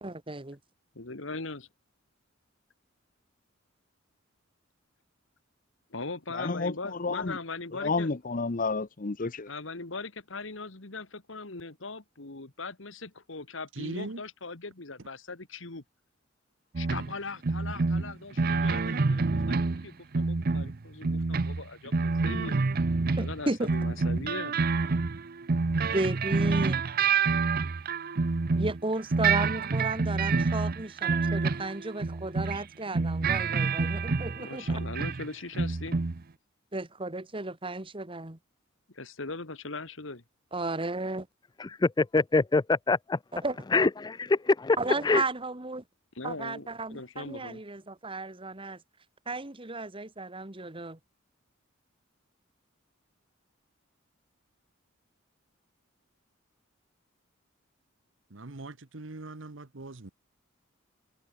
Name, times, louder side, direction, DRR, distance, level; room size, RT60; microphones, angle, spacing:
voice 1, 0.0-0.6 23.2-23.7 25.9-26.8 28.6-34.8 36.7-38.4 40.5-41.3 43.3-43.6 44.8-45.8 46.2-48.8 49.3-51.0, right 2 dB, 25° right, 1.7 m, -34 dB
voice 2, 1.0-1.7 5.9-8.1 9.5-15.8 16.8-22.6 23.2-24.6 34.4-36.0 38.9-40.2 46.2-47.6, left 3 dB, 70° left, 2.0 m, -40 dB
voice 3, 6.3-7.4 7.7-9.5, left 3 dB, 40° left, 0.8 m, -31 dB
voice 4, 13.8-14.2 32.9-33.0 33.3-33.5 58.3-60.1, right 2 dB, 65° right, 1.2 m, -40 dB
sound 1, 16.7-17.1 17.4-19.9 20.1-23.4 23.7-28.8 29.1-32.6 32.9-35.3 35.5-36.2, right 4 dB, 45° right, 0.6 m, -27 dB
voice 5, 41.6-43.2 43.7-44.8 45.0-45.2, left 3 dB, 20° left, 0.4 m, -24 dB
head